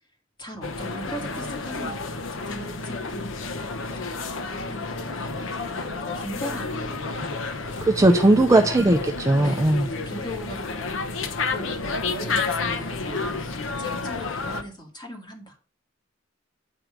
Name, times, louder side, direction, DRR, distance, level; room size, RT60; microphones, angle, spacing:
voice 1, 0.4-3.5 3.8-8.3 9.4-15.6, equal, 25° left, 2 dB, 2.3 m, -40 dB
sound 1, 0.6-14.6, left 3 dB, 85° left, 0.9 m, -30 dB
voice 2, 7.8-9.9, right 2 dB, 15° right, 4 dB, 0.5 m, -18 dB
9.0 x 4.7 x 5.1 m, 0.39 s
head